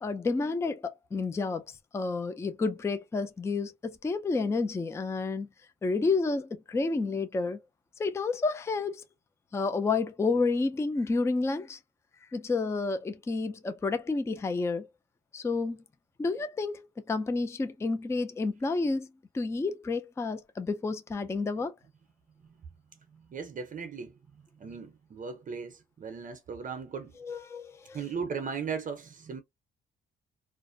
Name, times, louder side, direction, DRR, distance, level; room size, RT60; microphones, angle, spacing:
voice 1, 0.0-5.5 5.8-7.6 8.0-9.0 9.5-11.8 12.3-14.9 15.3-15.8 16.2-19.1 19.3-21.7 27.2-28.0, left 3 dB, 15° left, 0.3 m, -30 dB
voice 2, 23.1-24.2 24.6-27.1 27.9-29.4, right 6 dB, 40° right, 0.6 m, -37 dB
2.4 x 2.1 x 2.5 m
cardioid pair, 90°, 20 cm